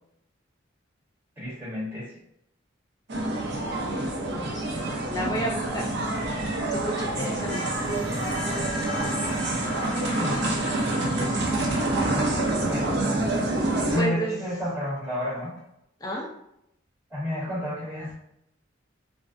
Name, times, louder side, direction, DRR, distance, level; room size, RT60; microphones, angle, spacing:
voice 1, 1.4-2.1 4.9-5.3 9.9-10.7 11.6-12.0 12.7-13.0 13.9-15.5 17.1-18.1, left 1 dB, 15° right, -11 dB, 0.9 m, -31 dB
sound 1, 3.1-14.0, right 2 dB, 60° right, 0.5 m, -27 dB
voice 2, 4.3-5.9 6.7-7.6 14.0-14.3 16.0-16.3, right 1 dB, 20° left, -2 dB, 0.4 m, -31 dB
sound 2, 6.7-15.6, left 2 dB, 70° left, 0.8 m, -39 dB
2.5 x 2.1 x 2.3 m, 0.79 s
head